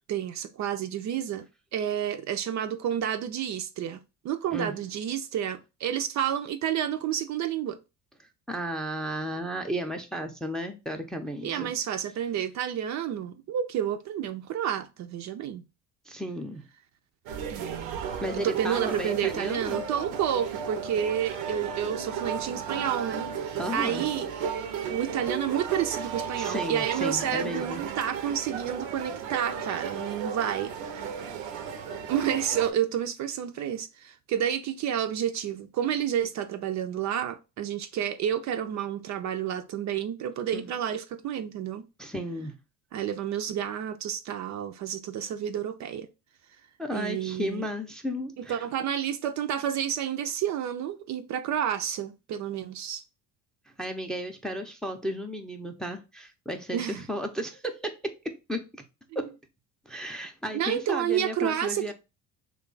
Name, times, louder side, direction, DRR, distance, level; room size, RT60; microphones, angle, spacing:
voice 1, 0.1-1.5 1.7-7.8 11.4-15.6 17.5-18.0 18.4-24.3 24.9-31.1 32.1-41.8 42.9-46.1 46.9-47.7 48.4-53.0 56.7-57.0 60.5-61.9, right 9 dB, 50° right, 0.4 m, -30 dB
voice 2, 8.5-11.7 16.1-16.6 18.2-19.8 23.6-24.0 26.4-27.8 40.5-40.7 42.0-42.5 46.8-48.6 53.8-58.8 59.2-59.3 59.9-61.9, equal, ahead, 0.5 m, -34 dB
sound 1, 17.3-32.7, right 7 dB, 80° right, 0.7 m, -34 dB
3.2 x 2.3 x 3.7 m
supercardioid pair, 90°, 37 cm